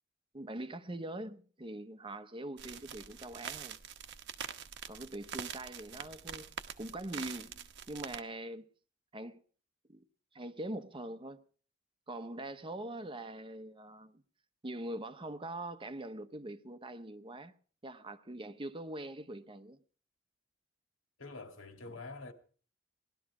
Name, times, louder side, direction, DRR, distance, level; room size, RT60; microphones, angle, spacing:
voice 1, 0.3-3.8 4.9-8.7 9.1-9.4 9.9-10.0 10.3-11.4 12.1-14.2 14.6-17.5 17.8-19.8, right 1 dB, 25° right, 0.8 m, -43 dB
sound 1, 2.6-8.2, right 8 dB, 60° right, 1.0 m, -45 dB
voice 2, 21.2-22.3, left 3 dB, 75° left, 2.1 m, -47 dB
19.0 x 12.5 x 4.8 m
head